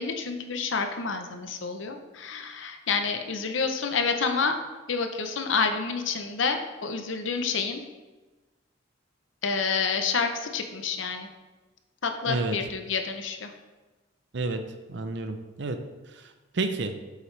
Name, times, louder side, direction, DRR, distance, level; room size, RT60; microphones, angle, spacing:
voice 1, 0.0-4.5 4.9-7.8 9.4-11.3 12.0-13.5, left 5 dB, 75° left, 6 dB, 0.7 m, -28 dB
voice 2, 12.3-12.6 14.3-14.6 14.9-15.8 16.1-16.9, right 3 dB, 60° right, 8 dB, 0.6 m, -30 dB
7.8 x 5.7 x 3.3 m, 1.2 s
head